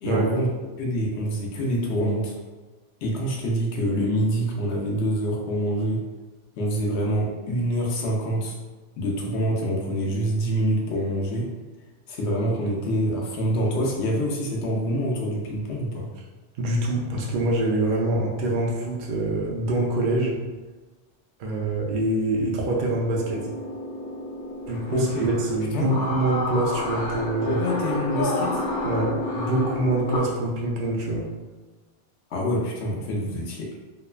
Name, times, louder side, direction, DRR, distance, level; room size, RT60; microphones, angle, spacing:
voice 1, 0.0-0.5 0.8-2.3 3.0-6.0 6.6-8.6 9.0-11.5 12.1-16.1 24.9-25.3 25.7-25.9 27.4-28.6 32.3-33.8, equal, 70° left, -1 dB, 0.9 m, -26 dB
voice 2, 16.6-20.4 21.4-23.5 24.7-27.6 28.8-31.3, right 2 dB, 60° right, -2 dB, 0.6 m, -25 dB
sound 1, 23.1-30.2, left 2 dB, 90° left, 1.1 m, -30 dB
3.0 x 2.1 x 2.3 m, 1.2 s
omnidirectional pair, 1.2 m